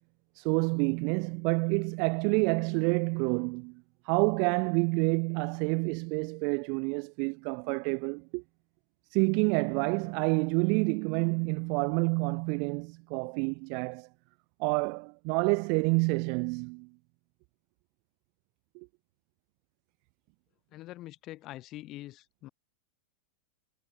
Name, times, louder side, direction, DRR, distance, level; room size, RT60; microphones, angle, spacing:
voice 1, 0.4-8.4 9.1-14.1 14.6-16.9 18.7-18.9, right 39 dB, 45° right, 0.5 m, -28 dB
voice 2, 20.7-22.5, left 16 dB, 35° left, 3.1 m, -44 dB
figure-of-eight pair, 90°, 0 cm